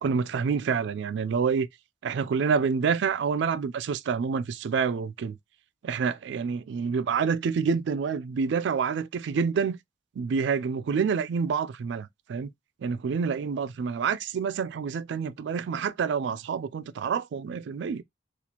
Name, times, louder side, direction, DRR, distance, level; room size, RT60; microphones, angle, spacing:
voice 1, 0.0-1.7 2.0-5.4 5.8-9.8 10.2-12.5 12.8-18.0, right 6 dB, 65° right, 0.3 m, -27 dB
4.1 x 2.4 x 2.8 m
head